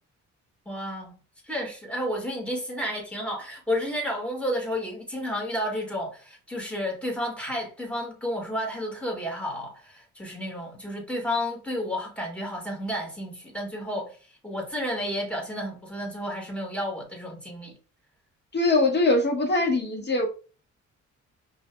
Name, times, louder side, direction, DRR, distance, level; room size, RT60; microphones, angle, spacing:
voice 1, 0.7-1.2 1.4-17.7, equal, 5° left, 2.0 m, -31 dB
voice 2, 18.5-20.3, left 2 dB, 35° left, 1.4 m, -22 dB
5.2 x 2.7 x 2.3 m
cardioid pair, 90°, 30 cm